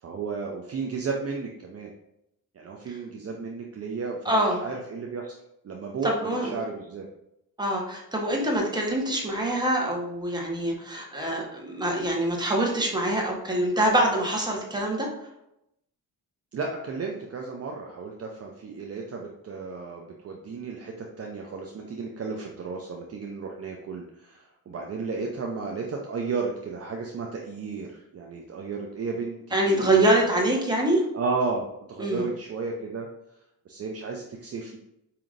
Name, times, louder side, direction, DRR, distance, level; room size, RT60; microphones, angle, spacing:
voice 1, 0.0-1.9 2.5-5.4 5.6-7.1 16.5-30.4 31.1-33.1 33.7-34.8, right 4 dB, 40° right, 0 dB, 0.6 m, -33 dB
voice 2, 4.2-4.6 6.0-6.6 7.6-15.1 29.5-31.0 32.0-32.3, right 1 dB, 10° right, -1 dB, 1.1 m, -25 dB
5.1 x 2.8 x 2.5 m, 0.83 s
cardioid pair, 80°, 37 cm